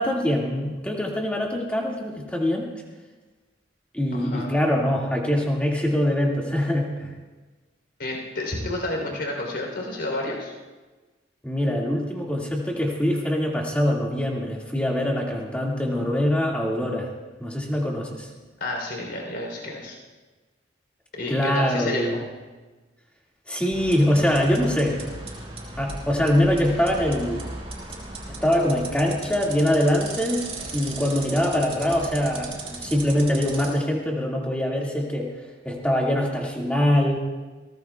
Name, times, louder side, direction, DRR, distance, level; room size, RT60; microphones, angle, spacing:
voice 1, 0.0-2.7 3.9-7.1 11.4-17.1 17.4-18.3 21.3-22.2 23.5-25.0 25.8-27.5 28.3-30.4 30.7-35.3 35.6-37.2, equal, 5° left, -2 dB, 2.1 m, -23 dB
voice 2, 4.1-4.5 8.0-10.5 18.6-20.0 21.1-22.2, left 1 dB, 65° left, 0 dB, 3.7 m, -30 dB
sound 1, 23.7-33.7, right 2 dB, 30° right, 5.5 m, -37 dB
23.0 x 18.5 x 2.4 m, 1.3 s
head